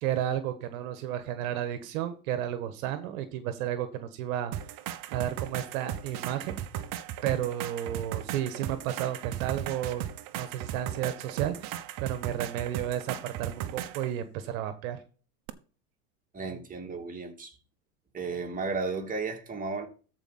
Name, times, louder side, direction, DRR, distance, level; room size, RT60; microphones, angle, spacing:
voice 1, 0.0-4.5 5.1-6.6 7.2-10.0 10.3-15.0, right 11 dB, 60° right, 1.4 m, -32 dB
sound 1, 4.5-14.1 15.5-15.6, right 11 dB, 45° right, 1.2 m, -37 dB
voice 2, 16.3-17.5 18.1-19.9, right 4 dB, 20° right, 2.6 m, -34 dB
13.5 x 5.0 x 4.2 m
hypercardioid pair, 105°, 45 cm